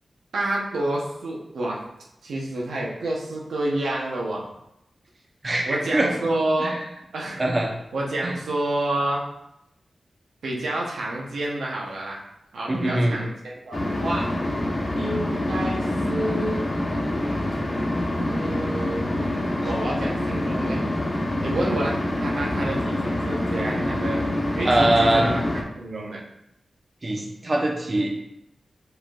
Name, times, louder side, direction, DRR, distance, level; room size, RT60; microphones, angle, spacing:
voice 1, 0.3-1.8 2.2-4.4 5.7-6.8 7.1-7.4 7.9-9.3 10.4-12.2 12.5-14.3 15.0-16.6 18.3-19.1 19.6-20.8 21.4-24.2 24.5-26.2, right 1 dB, 90° right, -3 dB, 0.8 m, -29 dB
voice 2, 5.4-6.1 6.6-6.7 7.4-7.7 8.2-8.3 12.7-13.2 24.6-25.3 27.0-28.1, right 1 dB, 45° right, 0 dB, 0.8 m, -22 dB
sound 1, 13.7-25.6, left 1 dB, 40° left, 1.0 m, -26 dB
4.9 x 4.4 x 2.4 m, 0.83 s
cardioid pair, 40°, 0 cm